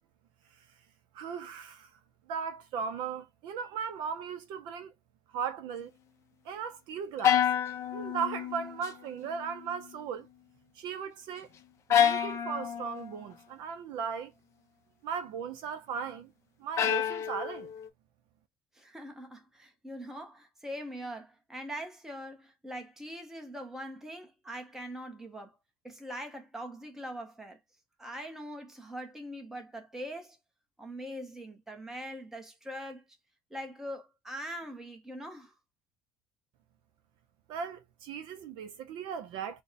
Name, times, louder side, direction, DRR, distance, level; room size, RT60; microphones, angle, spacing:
voice 1, 1.1-1.9 2.3-4.9 5.3-5.9 6.4-10.3 10.7-11.5 11.9-14.3 15.0-16.3 16.6-17.7 37.5-39.6, right 6 dB, 55° right, 0.4 m, -37 dB
sound 1, 7.2-8.9 9.2-9.8 11.9-13.1 16.8-17.9, left 9 dB, 30° left, 0.5 m, -28 dB
voice 2, 18.8-25.5 25.8-27.6 28.0-30.4 30.8-33.0 33.5-35.5, equal, 5° right, 0.7 m, -42 dB
3.3 x 2.1 x 4.0 m
cardioid pair, 170°, 10 cm